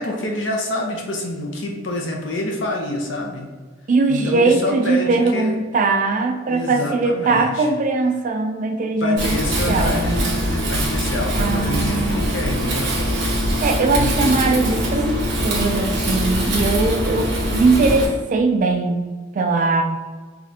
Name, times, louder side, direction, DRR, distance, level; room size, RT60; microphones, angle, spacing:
voice 1, 0.0-3.5 4.1-5.5 6.5-7.7 9.0-12.9 14.0-14.1, left 2 dB, 70° left, 1 dB, 0.7 m, -27 dB
voice 2, 3.9-9.4 9.7-10.3 11.3-12.3 13.6-19.0 19.3-19.8, right 3 dB, 40° right, 5 dB, 0.4 m, -20 dB
Wind, 9.2-18.0, equal, 65° right, 1.2 m, -22 dB
4.9 x 2.4 x 2.8 m, 1.4 s
head